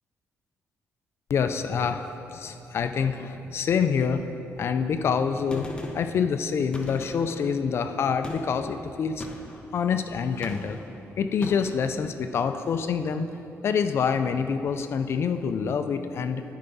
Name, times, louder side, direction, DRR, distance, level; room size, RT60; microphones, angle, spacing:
voice 1, 1.3-4.2 4.6-5.7 5.9-9.3 9.7-10.8 11.2-13.3 13.6-16.4, left 6 dB, 55° left, 8 dB, 0.4 m, -26 dB
Gunshot gunfire, 5.5-6.2 6.7-7.5 8.2-8.6 9.2-9.7 10.4-10.9 11.4-11.8, left 2 dB, 20° left, 0.9 m, -39 dB
14.0 x 5.7 x 4.0 m, 2.9 s
cardioid pair, 130°, 5 cm